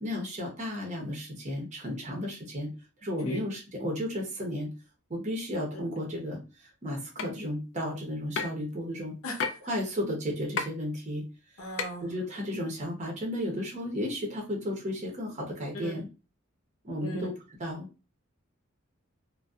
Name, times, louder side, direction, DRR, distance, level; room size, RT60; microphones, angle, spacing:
voice 1, 0.0-2.7 3.0-4.7 5.1-9.1 9.7-11.3 12.0-16.1 16.8-17.3 17.6-17.9, left 1 dB, 35° right, 0 dB, 0.7 m, -33 dB
sound 1, 7.2-7.3 8.4-8.6 9.4-9.6 10.6-10.7 11.8-11.9, left 5 dB, 60° left, 0.4 m, -29 dB
voice 2, 9.2-9.6 11.6-12.1 15.7-15.9 17.0-17.3, equal, 85° left, 1 dB, 0.8 m, -37 dB
2.5 x 2.2 x 2.3 m, 0.31 s
head